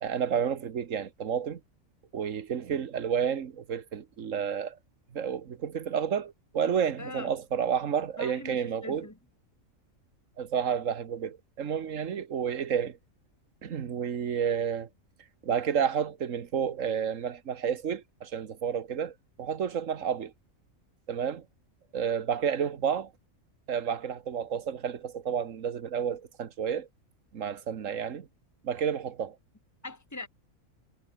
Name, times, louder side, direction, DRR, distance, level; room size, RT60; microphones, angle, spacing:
voice 1, 0.0-1.6 2.1-4.8 5.1-9.1 10.4-13.0 13.6-14.9 15.4-20.3 21.1-21.4 21.9-23.1 23.7-26.9 27.3-28.3 28.6-29.4, right 7 dB, 70° right, 1.6 m, -30 dB
voice 2, 7.0-7.3 8.2-9.2 29.8-30.3, left 2 dB, 10° left, 2.6 m, -41 dB
omnidirectional pair, 1.4 m